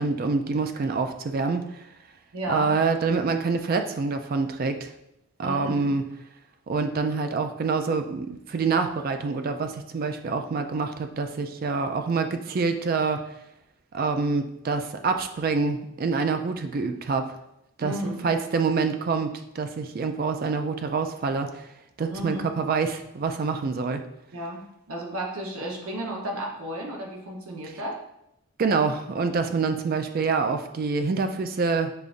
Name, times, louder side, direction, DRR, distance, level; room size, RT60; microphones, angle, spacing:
voice 1, 0.0-1.8 2.5-4.9 5.4-6.0 6.7-13.2 13.9-17.4 17.8-17.9 18.2-21.7 22.0-24.0 28.6-31.9, right 4 dB, 40° right, 7 dB, 0.3 m, -26 dB
voice 2, 2.3-2.7 5.4-5.9 17.8-18.3 22.1-22.5 24.3-28.0, right 1 dB, 75° right, 0 dB, 0.8 m, -33 dB
6.7 x 2.4 x 2.5 m, 0.83 s
head